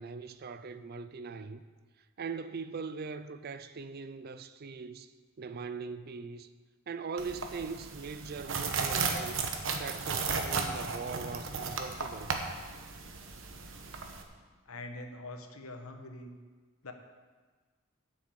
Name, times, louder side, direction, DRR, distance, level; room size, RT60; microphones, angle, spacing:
voice 1, 0.0-1.6 2.2-5.1 5.4-6.5 6.9-9.4 9.8-12.3, right 4 dB, 45° right, 0.5 m, -41 dB
sound 1, 7.2-14.2, right 4 dB, 65° right, 1.1 m, -35 dB
voice 2, 14.7-16.4 16.8-16.9, left 2 dB, 85° left, 1.2 m, -44 dB
8.2 x 6.7 x 8.2 m
head